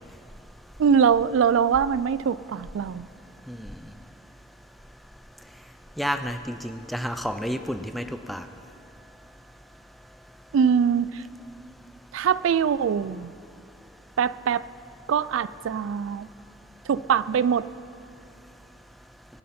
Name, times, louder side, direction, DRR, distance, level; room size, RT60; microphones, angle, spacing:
voice 1, 0.8-3.1 10.5-11.2 12.1-13.3 14.2-14.7 15.1-16.3 16.9-17.7, right 7 dB, 85° right, 18 dB, 0.3 m, -23 dB
voice 2, 6.0-8.4, equal, ahead, 7 dB, 0.5 m, -30 dB
24.0 x 11.5 x 4.3 m, 2.6 s
head